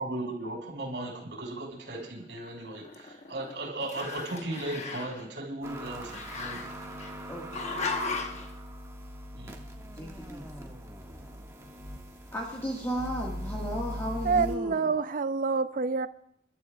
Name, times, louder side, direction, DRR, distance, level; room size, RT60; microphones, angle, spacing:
voice 1, 0.0-6.6 9.4-9.5, right 2 dB, 80° right, 5.2 m, -36 dB
Growling, 2.3-3.5 3.8-5.2 6.1-7.1 7.5-8.5, left 4 dB, 40° left, 1.1 m, -36 dB
sound 1, 5.6-14.6, equal, 20° right, 1.7 m, -41 dB
voice 2, 7.3-8.2 9.9-10.7 12.3-14.9, equal, 15° left, 1.7 m, -35 dB
voice 3, 14.2-16.1, right 4 dB, 50° right, 0.5 m, -27 dB
29.5 x 12.5 x 2.4 m
head